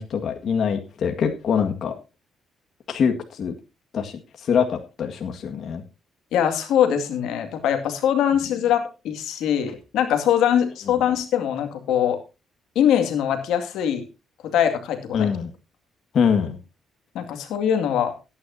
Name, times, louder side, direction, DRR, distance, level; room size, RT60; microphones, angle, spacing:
voice 1, 0.0-1.9 2.9-3.6 3.9-5.8 15.1-15.5 16.1-16.6, left 7 dB, 60° left, 4 dB, 1.8 m, -24 dB
voice 2, 6.3-12.2 12.8-14.0 14.4-15.3 17.1-18.1, left 9 dB, 85° left, 6 dB, 2.2 m, -22 dB
18.0 x 9.9 x 2.8 m, 0.29 s
cardioid pair, 90°, 0 cm